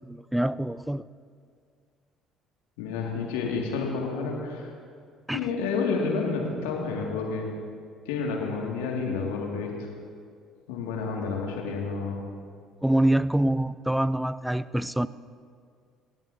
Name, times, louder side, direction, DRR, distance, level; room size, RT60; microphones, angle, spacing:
voice 1, 0.1-1.1 5.3-5.4 12.8-15.1, right 1 dB, 5° right, 17 dB, 0.4 m, -25 dB
voice 2, 2.8-4.7 5.3-7.5 8.1-9.9 10.7-12.2, left 4 dB, 75° left, 0 dB, 1.9 m, -30 dB
19.0 x 15.5 x 2.7 m, 2.1 s
hypercardioid pair, 55°, 0 cm